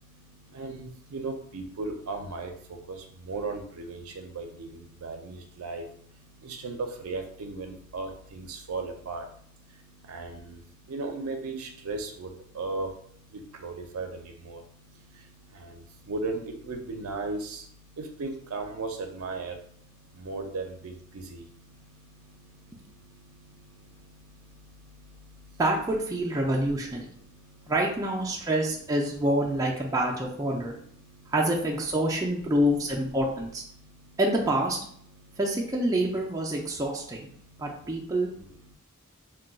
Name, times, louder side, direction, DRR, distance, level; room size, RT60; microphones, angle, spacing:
voice 1, 1.1-2.5 3.3-4.0 4.4-4.7 5.0-5.8 6.4-6.8 7.0-9.2 10.1-10.3 10.9-12.3 12.6-12.9 13.6-14.1 14.5-14.6 16.1-16.4 16.7-17.4 18.2-18.9 19.2-19.5 20.3-20.9 21.3-21.4, right 3 dB, 75° right, 4 dB, 0.5 m, -35 dB
voice 2, 25.6-27.1 27.7-30.7 31.3-33.6 34.2-34.8 35.4-37.3 37.6-38.3, right 1 dB, 15° right, -2 dB, 0.3 m, -27 dB
2.2 x 2.2 x 3.8 m, 0.62 s
head